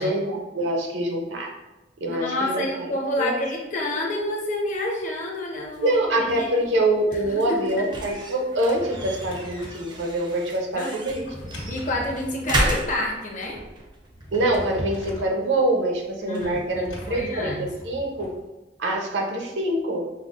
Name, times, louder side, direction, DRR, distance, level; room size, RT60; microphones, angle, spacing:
voice 1, 0.0-1.5 2.0-3.3 5.8-11.3 14.3-18.3 18.8-20.2, right 1 dB, 75° right, 1 dB, 0.6 m, -25 dB
voice 2, 2.1-6.7 7.2-7.9 10.7-10.9 11.7-13.6 16.2-17.6, left 1 dB, 45° left, -1 dB, 0.7 m, -29 dB
sound 1, 5.6-18.4, right 1 dB, 25° right, 0.5 m, -35 dB
Drawer open or close, 8.6-9.9 11.0-12.7 14.0-15.4 16.7-18.3, equal, 85° left, 1.2 m, -38 dB
5.4 x 2.0 x 2.4 m, 1.0 s
head